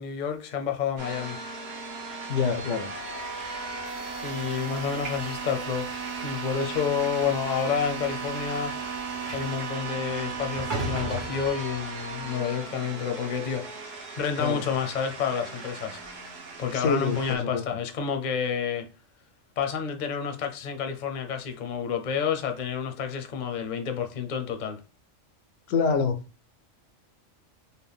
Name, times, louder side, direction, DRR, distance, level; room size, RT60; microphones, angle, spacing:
voice 1, 0.0-1.4 4.2-5.9 6.2-8.7 9.3-16.0 16.6-18.9 19.6-24.8, left 7 dB, 45° left, 0.7 m, -29 dB
sound 1, 1.0-17.4, right 4 dB, 60° right, 1.0 m, -36 dB
voice 2, 2.3-2.9 9.8-9.9 14.4-14.6 16.7-17.6 25.7-26.2, left 5 dB, 85° left, 1.0 m, -26 dB
Train / Sliding door, 3.0-12.3, right 1 dB, 45° right, 1.4 m, -41 dB
4.0 x 2.2 x 3.4 m
omnidirectional pair, 1.2 m